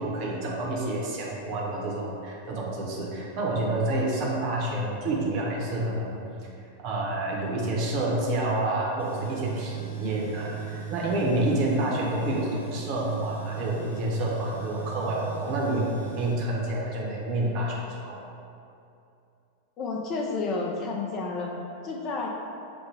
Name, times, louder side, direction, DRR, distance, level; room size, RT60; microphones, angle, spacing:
voice 1, 0.0-6.2 6.8-18.2, right 1 dB, 40° right, -3 dB, 0.9 m, -28 dB
Tools, 9.0-16.3, right 5 dB, 90° right, 0.9 m, -37 dB
voice 2, 19.8-21.5 21.8-22.3, left 3 dB, 35° left, 0 dB, 0.5 m, -30 dB
6.1 x 2.1 x 3.3 m, 2.6 s
figure-of-eight pair, 90°, 0 cm